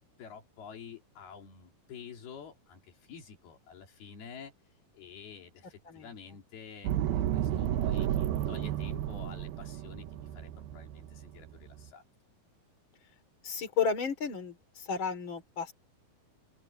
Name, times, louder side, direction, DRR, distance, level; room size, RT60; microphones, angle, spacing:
voice 1, 0.0-4.5 4.9-12.0, left 7 dB, 80° left, 4.9 m, -49 dB
sound 1, 6.8-11.9, right 11 dB, 80° right, 2.9 m, -32 dB
voice 2, 13.4-14.5 14.9-15.7, left 6 dB, 35° left, 3.2 m, -32 dB
open air
omnidirectional pair, 4.4 m